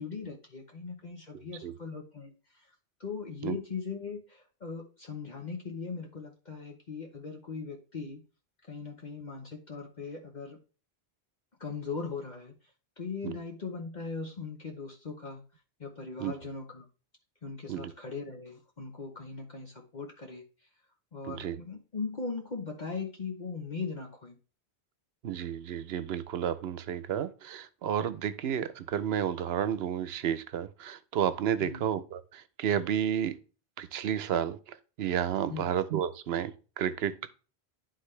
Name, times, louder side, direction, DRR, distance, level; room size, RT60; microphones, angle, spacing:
voice 1, 0.0-2.7 3.0-8.2 8.7-10.6 11.6-12.5 13.0-15.4 15.8-16.8 17.4-20.4 21.1-24.4 31.6-31.8 35.5-35.8, left 4 dB, 45° left, 1.0 m, -39 dB
voice 2, 1.3-1.7 3.4-3.6 13.2-13.4 16.2-16.3 17.7-17.9 21.3-21.6 25.2-33.4 33.8-37.4, right 9 dB, 75° right, 0.9 m, -31 dB
11.5 x 3.8 x 3.2 m
omnidirectional pair, 1.1 m